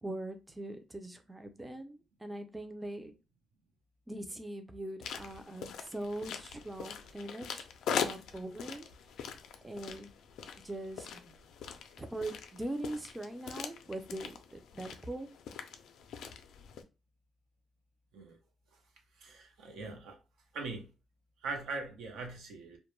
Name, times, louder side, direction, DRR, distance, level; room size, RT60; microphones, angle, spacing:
voice 1, 0.0-3.1 4.1-7.7 8.0-8.9 9.6-10.1 10.6-11.3 12.0-15.3, right 1 dB, 10° right, 0.4 m, -41 dB
sound 1, 5.0-16.8, left 7 dB, 80° left, 0.3 m, -42 dB
voice 2, 19.2-20.2 20.5-20.9 21.4-22.8, right 3 dB, 85° right, 0.7 m, -41 dB
2.1 x 2.1 x 3.0 m
cardioid pair, 105°, 0 cm